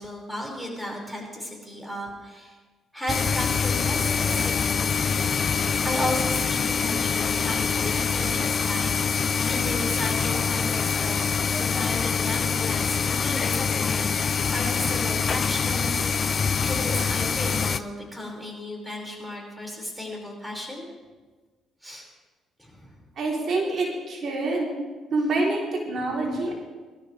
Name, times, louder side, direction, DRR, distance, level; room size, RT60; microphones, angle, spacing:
voice 1, 0.0-2.6 2.9-4.7 5.3-20.9 21.8-22.1 22.6-23.0 26.3-26.5, left 1 dB, ahead, -1 dB, 5.6 m, -35 dB
sound 1, 3.1-17.8, left 6 dB, 45° left, 0.6 m, -25 dB
voice 2, 23.2-24.7 25.1-26.5, right 2 dB, 55° right, -2 dB, 3.6 m, -26 dB
23.5 x 13.0 x 3.4 m, 1.3 s
cardioid pair, 80°, 0 cm